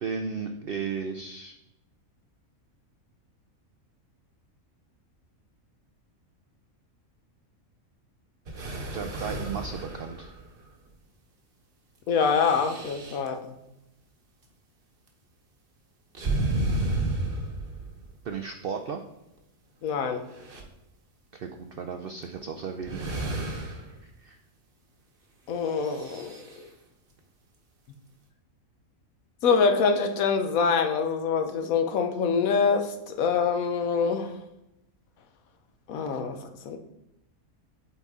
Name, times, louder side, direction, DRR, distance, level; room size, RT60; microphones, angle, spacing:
voice 1, 0.0-1.5 8.9-10.3 18.2-19.0 21.3-23.1 23.5-23.7 24.0-24.4, right 6 dB, 70° right, 6 dB, 0.5 m, -35 dB
Breathe in and out of a male smoker, 8.5-10.7 12.1-13.3 16.1-18.1 19.4-19.5 20.0-20.6 22.2-22.4 22.8-24.0 25.7-26.6, right 2 dB, 45° right, 1.1 m, -32 dB
voice 2, 12.1-13.5 19.8-20.2 25.5-26.3 29.4-34.3 35.9-36.4 36.6-36.8, left 5 dB, 75° left, 6 dB, 1.1 m, -25 dB
8.1 x 4.0 x 3.6 m, 0.89 s
omnidirectional pair, 1.5 m